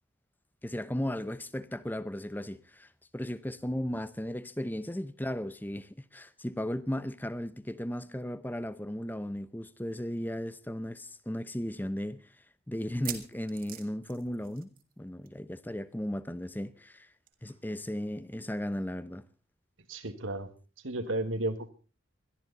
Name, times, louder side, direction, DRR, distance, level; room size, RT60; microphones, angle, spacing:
voice 1, 0.6-12.3 12.7-14.7 15.0-17.1 17.4-19.2, left 1 dB, 10° left, 0.7 m, -36 dB
sound 1, 10.2-10.3 10.6-10.7 11.3-11.4 12.8-15.0 15.2-15.5 15.7-15.8 17.3-17.4, right 11 dB, 45° right, 2.2 m, -43 dB
voice 2, 19.9-20.5 20.8-21.7, right 2 dB, 85° right, 1.9 m, -33 dB
21.5 x 13.5 x 4.1 m
head